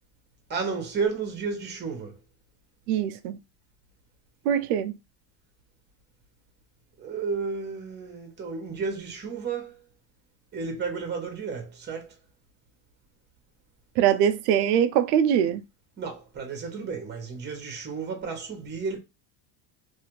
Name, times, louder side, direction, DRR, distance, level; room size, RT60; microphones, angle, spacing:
voice 1, 0.5-2.2 7.0-9.8 10.5-12.2 16.0-19.0, right 5 dB, 20° right, 1.0 m, -32 dB
voice 2, 2.9-3.4 4.5-5.0 14.0-15.6, right 9 dB, 80° right, 0.6 m, -22 dB
2.7 x 2.4 x 3.0 m
cardioid pair, 130°, 47 cm